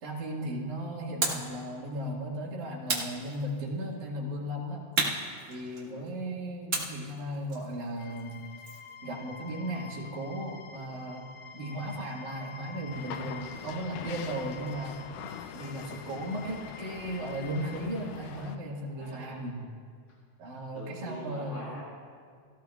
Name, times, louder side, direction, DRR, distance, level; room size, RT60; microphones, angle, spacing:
voice 1, 0.0-4.9 5.5-8.4 9.0-15.0 15.5-19.6 20.4-21.7, right 1 dB, 70° right, -4 dB, 3.2 m, -36 dB
sound 1, 1.2-1.5 2.9-3.8 4.9-6.1 6.7-8.9, right 3 dB, 50° right, 0.7 m, -33 dB
voice 2, 5.8-6.1 18.4-18.6 18.9-19.7 20.7-21.8, left 1 dB, 30° left, -7 dB, 1.5 m, -46 dB
sound 2, 8.0-17.8, left 6 dB, 65° left, 1.9 m, -48 dB
sound 3, 12.9-18.6, left 8 dB, 90° left, 2.1 m, -43 dB
17.5 x 16.0 x 2.3 m, 2.1 s
omnidirectional pair, 3.5 m